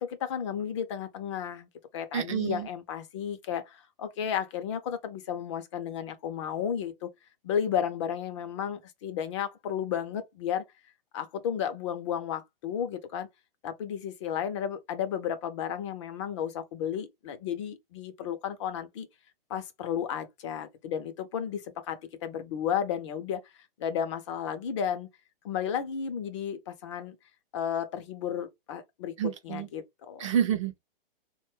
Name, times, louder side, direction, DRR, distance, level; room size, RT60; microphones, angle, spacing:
voice 1, 0.0-1.7 1.9-7.1 7.4-10.6 11.1-13.3 13.6-19.1 19.5-23.4 23.8-25.1 25.4-27.1 27.5-29.2 29.4-30.3, left 8 dB, 30° left, 0.5 m, -33 dB
voice 2, 2.1-2.7 29.2-29.7 30.2-30.8, right 9 dB, 35° right, 0.4 m, -28 dB
3.7 x 2.2 x 3.0 m
hypercardioid pair, 150°, 29 cm